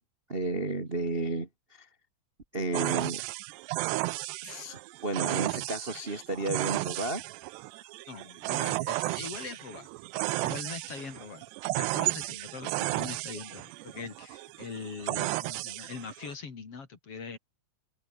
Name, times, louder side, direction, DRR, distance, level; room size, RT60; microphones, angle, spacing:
voice 1, 0.3-1.9 2.5-3.2 4.4-7.2, right 2 dB, 45° right, 0.7 m, -32 dB
sound 1, 2.7-16.3, right 21 dB, 80° right, 2.6 m, -34 dB
voice 2, 8.1-9.9 10.4-11.4 11.7-17.4, left 5 dB, 35° left, 3.2 m, -42 dB
omnidirectional pair, 5.3 m